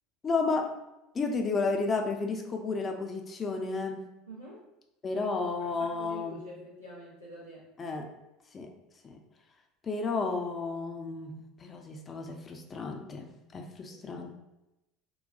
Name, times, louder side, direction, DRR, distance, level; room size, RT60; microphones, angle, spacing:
voice 1, 0.2-0.7 1.1-4.0 5.0-6.4 7.8-8.1 8.5-8.7 9.0-9.2 9.8-14.4, left 4 dB, 25° left, 3 dB, 0.5 m, -32 dB
voice 2, 4.3-4.6 5.6-7.6 13.9-14.2, equal, 85° right, -7 dB, 0.6 m, -46 dB
3.8 x 2.2 x 2.3 m, 0.92 s
figure-of-eight pair, 70°, 0 cm